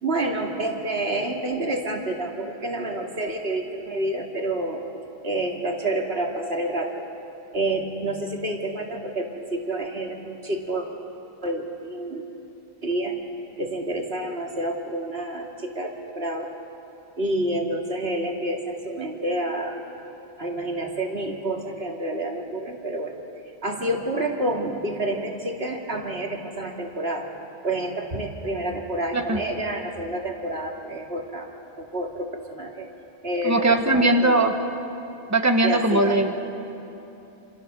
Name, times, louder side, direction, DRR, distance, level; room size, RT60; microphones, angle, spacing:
voice 1, 0.0-4.8 5.2-7.0 7.5-10.9 11.4-12.2 12.8-13.2 13.6-16.5 17.2-19.8 20.4-23.1 23.6-27.3 27.6-31.5 31.8-32.9 33.2-34.5 35.6-36.2, right 1 dB, 80° right, 1 dB, 2.8 m, -28 dB
voice 2, 33.4-34.5 35.3-36.3, right 2 dB, 15° right, 5 dB, 1.4 m, -20 dB
27.5 x 27.5 x 6.9 m, 3.0 s
omnidirectional pair, 1.0 m